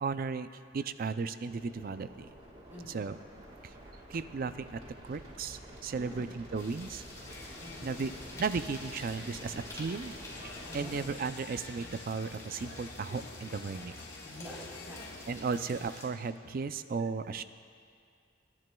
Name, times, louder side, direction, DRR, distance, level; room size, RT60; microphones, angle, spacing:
voice 1, 0.0-0.5 0.7-2.3 2.8-3.2 4.1-7.0 7.4-8.1 8.4-10.2 10.7-13.9 15.3-17.4, right 4 dB, 50° right, 12 dB, 0.4 m, -35 dB
sound 1, 1.5-11.1, right 1 dB, 30° right, 1.7 m, -49 dB
voice 2, 2.7-3.0 5.9-6.3 7.6-8.2 10.7-11.0 14.2-15.3, equal, 10° right, -6 dB, 3.8 m, -47 dB
sound 2, 6.5-16.1, left 2 dB, 20° left, 2.5 m, -49 dB
Crowd, 7.2-16.0, left 3 dB, 60° left, 1.0 m, -49 dB
27.0 x 11.0 x 2.3 m, 2.2 s
head